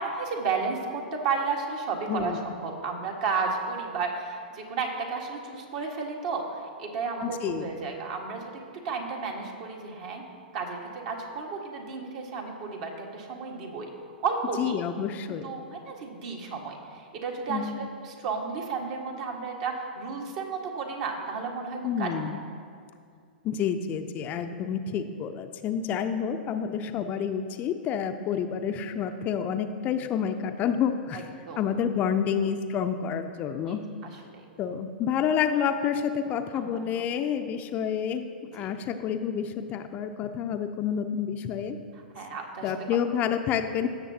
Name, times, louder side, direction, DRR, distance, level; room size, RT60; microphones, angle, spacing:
voice 1, 0.0-10.2 10.5-13.9 14.2-14.8 15.3-22.1 31.1-31.6 33.7-33.8 34.0-34.4 36.5-37.0 38.6-38.7 42.1-42.7, right 4 dB, 50° right, 1 dB, 1.6 m, -33 dB
voice 2, 2.1-2.4 7.2-7.7 14.6-15.5 17.5-17.8 21.8-22.4 23.4-31.3 31.6-33.8 34.6-38.2 38.5-41.8 42.6-43.9, left 8 dB, 30° left, 7 dB, 0.5 m, -29 dB
16.5 x 6.9 x 2.8 m, 2.2 s
hypercardioid pair, 110°, 5 cm